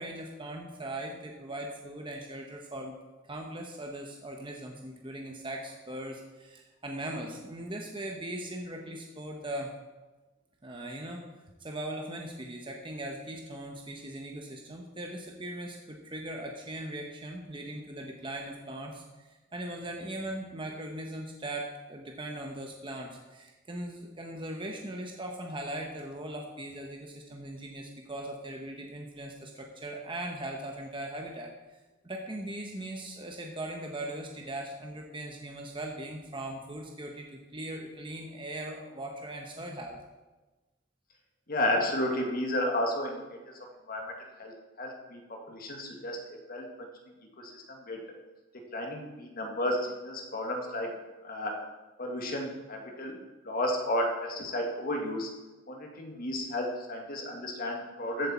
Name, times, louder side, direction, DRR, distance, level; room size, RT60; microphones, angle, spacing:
voice 1, 0.0-2.9 3.3-9.7 10.6-11.2 11.6-31.5 32.0-40.0, right 1 dB, 25° right, 1 dB, 1.0 m, -39 dB
voice 2, 41.5-43.5 43.9-45.2 45.5-46.9 47.4-48.0 48.7-50.9 51.2-51.5 52.0-53.2 53.4-55.3 55.7-58.3, left 1 dB, 45° left, 1 dB, 1.9 m, -32 dB
14.0 x 7.9 x 4.4 m, 1.2 s
head